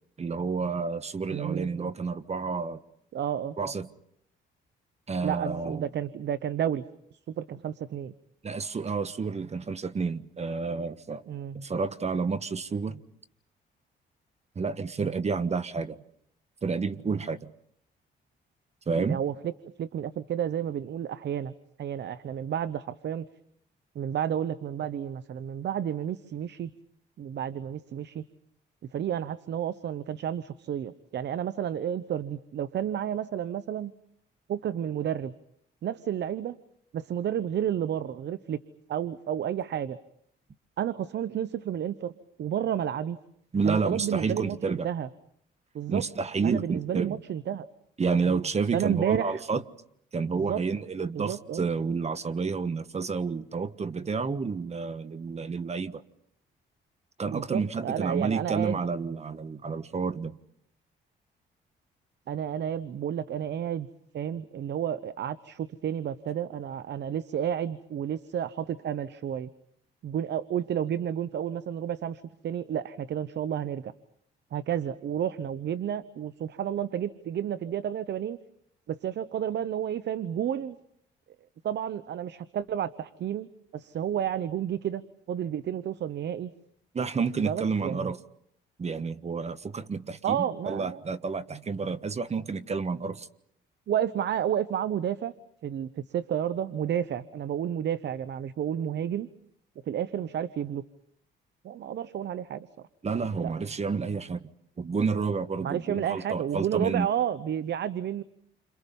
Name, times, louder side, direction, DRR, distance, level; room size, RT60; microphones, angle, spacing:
voice 1, 0.2-2.8 3.6-3.9 5.1-5.9 8.4-11.2 11.5-13.0 14.5-16.0 16.6-17.5 18.9-19.2 43.5-44.9 45.9-47.2 48.0-49.6 50.1-56.0 57.2-60.4 86.9-88.2 88.8-93.3 103.0-104.5 104.8-107.1, right 5 dB, 35° right, 1.4 m, -30 dB
voice 2, 1.3-1.7 3.1-3.6 5.2-6.8 7.4-8.1 11.3-11.6 19.0-19.5 19.8-21.5 21.8-23.3 23.9-26.7 27.2-28.2 28.9-33.9 34.5-35.3 35.8-36.6 36.9-38.6 38.9-40.0 40.8-42.1 42.4-43.2 43.7-45.1 45.7-46.1 46.4-47.7 48.7-49.4 50.4-50.6 51.1-51.7 57.3-58.8 62.3-63.9 64.1-69.5 70.0-73.9 74.5-78.4 78.9-80.8 81.6-83.5 83.7-85.0 85.3-86.5 87.5-88.1 90.2-91.0 93.9-95.3 95.6-99.3 99.9-100.8 101.6-102.7 103.2-103.5 105.6-108.2, right 9 dB, 60° right, 0.9 m, -31 dB
29.5 x 27.0 x 5.5 m
cardioid pair, 90°, 20 cm